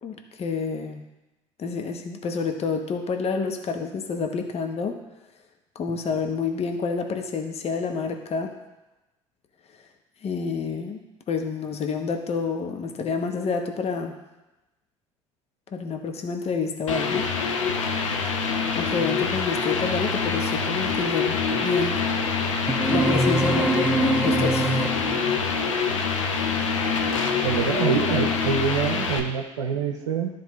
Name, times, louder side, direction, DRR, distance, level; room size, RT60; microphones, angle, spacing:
voice 1, 0.0-1.0 1.6-5.0 5.7-8.5 10.2-11.0 11.3-14.2 15.7-17.3 18.7-22.3 22.8-24.9, left 5 dB, 40° left, 4 dB, 1.0 m, -28 dB
sound 1, 16.9-29.2, left 5 dB, 85° left, 0.8 m, -25 dB
sound 2, 22.7-25.3, right 2 dB, 5° right, 0.5 m, -24 dB
voice 2, 27.4-30.3, right 6 dB, 80° right, 2 dB, 0.7 m, -25 dB
13.0 x 4.4 x 3.1 m, 1.0 s
hypercardioid pair, 60°, 16 cm